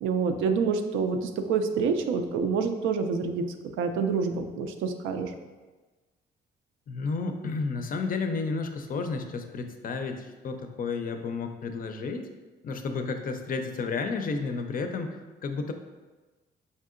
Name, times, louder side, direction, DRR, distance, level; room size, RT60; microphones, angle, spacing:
voice 1, 0.0-3.4 3.8-5.3, right 5 dB, 85° right, 6 dB, 0.4 m, -27 dB
voice 2, 6.9-12.3 12.6-15.7, left 4 dB, 45° left, 6 dB, 0.4 m, -32 dB
5.3 x 2.7 x 2.5 m, 1.3 s
cardioid pair, 90°, 20 cm